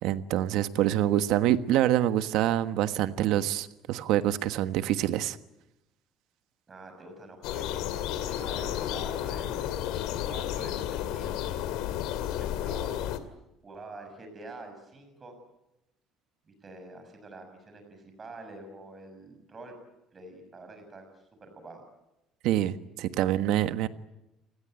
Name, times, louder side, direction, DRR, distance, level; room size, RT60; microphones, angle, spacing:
voice 1, 0.0-5.4 22.4-23.9, right 12 dB, 65° right, 11 dB, 1.4 m, -26 dB
voice 2, 6.7-9.7 10.2-11.5 12.2-13.0 13.6-15.4 16.5-19.7 20.1-21.8, right 2 dB, 20° right, 6 dB, 6.4 m, -46 dB
sound 1, 7.4-13.2, left 12 dB, 75° left, 2.4 m, -32 dB
29.5 x 20.0 x 9.0 m, 0.92 s
cardioid pair, 170°, 0 cm